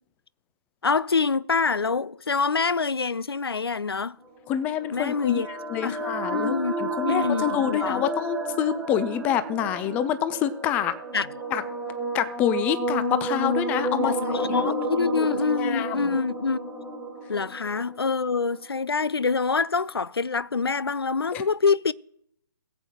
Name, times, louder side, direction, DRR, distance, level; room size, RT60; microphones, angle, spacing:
voice 1, 0.8-4.2 4.9-5.5 5.8-6.0 6.3-6.8 7.0-8.0 11.1-11.3 14.0-16.6 17.3-21.9, left 4 dB, 80° left, 0.4 m, -25 dB
sound 1, 4.4-18.6, right 1 dB, 5° right, 1.5 m, -31 dB
voice 2, 4.5-10.9 11.5-11.6 12.1-14.1 14.4-14.7 15.2-16.1 21.3-21.4, left 10 dB, 10° left, 0.4 m, -27 dB
21.0 x 8.0 x 2.9 m
figure-of-eight pair, 135°, 13 cm